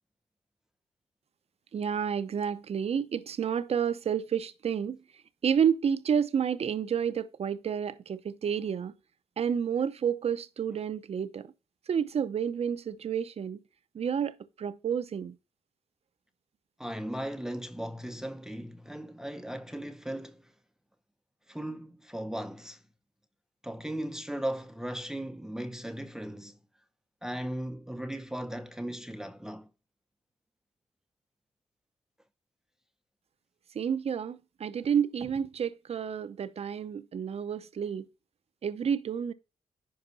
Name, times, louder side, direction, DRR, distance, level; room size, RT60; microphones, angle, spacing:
voice 1, 1.7-5.0 5.4-8.9 9.4-11.5 11.9-13.6 13.9-15.4 33.7-38.1 38.6-39.3, right 7 dB, 55° right, 0.7 m, -30 dB
voice 2, 16.8-20.5 21.5-22.8 23.6-26.6 27.2-29.7, right 1 dB, 5° right, 0.7 m, -37 dB
10.5 x 4.9 x 4.1 m
cardioid pair, 75°, 12 cm